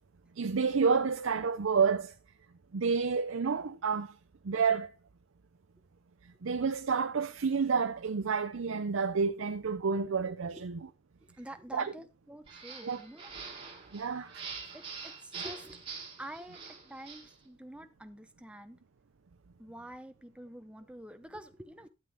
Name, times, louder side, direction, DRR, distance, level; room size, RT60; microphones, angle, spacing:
voice 1, 0.4-2.1 2.7-4.1 4.4-4.9 6.4-10.9 11.7-11.9 12.8-13.0 13.9-14.4, right 5 dB, 75° right, 0.6 m, -29 dB
voice 2, 11.2-13.3 14.7-15.8 16.2-18.8 19.6-21.9, right 1 dB, 5° right, 0.8 m, -47 dB
sound 1, 12.5-17.3, right 5 dB, 25° right, 3.3 m, -45 dB
12.5 x 7.5 x 3.5 m
head